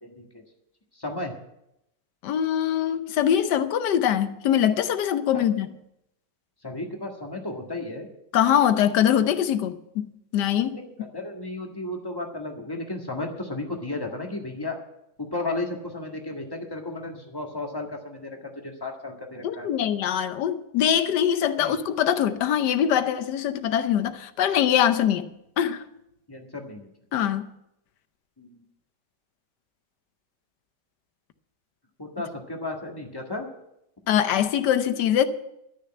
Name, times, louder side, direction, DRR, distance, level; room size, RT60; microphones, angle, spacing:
voice 1, 0.0-0.4 0.9-1.3 5.3-5.5 6.6-8.1 10.7-14.8 15.2-19.7 21.6-21.8 26.3-26.9 28.4-28.7 32.0-33.5, left 2 dB, 15° left, 1.6 m, -34 dB
voice 2, 2.2-5.7 8.3-10.8 19.4-25.3 25.6-25.8 27.1-27.5 34.1-35.3, left 9 dB, 90° left, 1.4 m, -23 dB
12.0 x 6.6 x 8.7 m
omnidirectional pair, 1.8 m